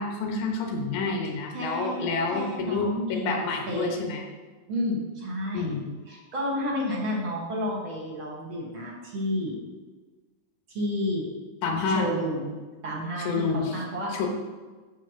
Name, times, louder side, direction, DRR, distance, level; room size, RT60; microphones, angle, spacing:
voice 1, 0.0-4.2 5.5-5.8 11.6-12.1 13.2-13.8 14.1-14.3, left 4 dB, 90° left, 2 dB, 2.6 m, -28 dB
voice 2, 1.5-2.1 2.3-3.4 3.7-3.9 4.7-5.8 6.1-9.6 10.7-11.3 11.9-12.6 12.8-14.1, left 1 dB, 50° right, -4 dB, 1.9 m, -30 dB
9.1 x 3.4 x 6.2 m, 1.3 s
omnidirectional pair, 3.4 m